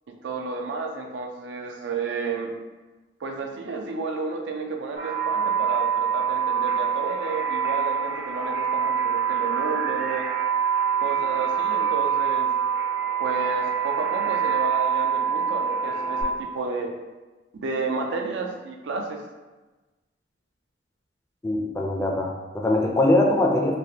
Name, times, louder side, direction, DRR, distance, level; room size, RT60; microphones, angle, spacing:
voice 1, 0.1-2.5 3.2-10.3 11.0-12.5 13.2-16.9 17.5-19.2, right 4 dB, 85° right, 2 dB, 0.4 m, -31 dB
sound 1, 5.0-16.2, right 7 dB, 60° right, 0.9 m, -25 dB
voice 2, 21.4-23.8, left 1 dB, 15° left, 0 dB, 0.4 m, -22 dB
3.3 x 2.4 x 2.8 m, 1.2 s
head